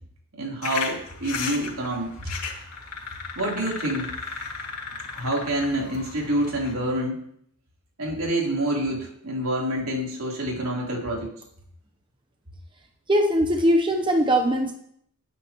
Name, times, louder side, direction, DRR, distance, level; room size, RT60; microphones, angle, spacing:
voice 1, 0.4-2.3 3.3-4.1 5.1-7.2 8.0-11.3, right 1 dB, 70° right, -2 dB, 3.6 m, -27 dB
sound 1, 0.6-6.7, left 5 dB, 80° left, 2.7 m, -35 dB
voice 2, 13.1-14.7, equal, 20° right, 4 dB, 0.8 m, -21 dB
20.5 x 9.5 x 3.1 m, 0.69 s
head